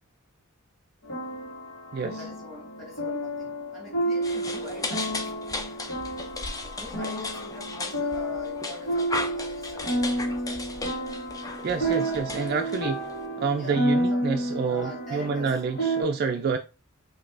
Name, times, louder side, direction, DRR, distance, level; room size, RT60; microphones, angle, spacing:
sound 1, 1.0-16.0, right 1 dB, 70° left, 1.6 m, -30 dB
voice 1, 2.2-5.4 6.8-10.6 11.8-12.5 13.6-15.6, equal, ahead, 2.0 m, -43 dB
sound 2, 4.2-13.2, left 2 dB, 15° left, 0.4 m, -36 dB
voice 2, 11.6-13.1 13.4-16.6, right 5 dB, 50° right, 0.4 m, -28 dB
5.1 x 2.8 x 2.5 m
head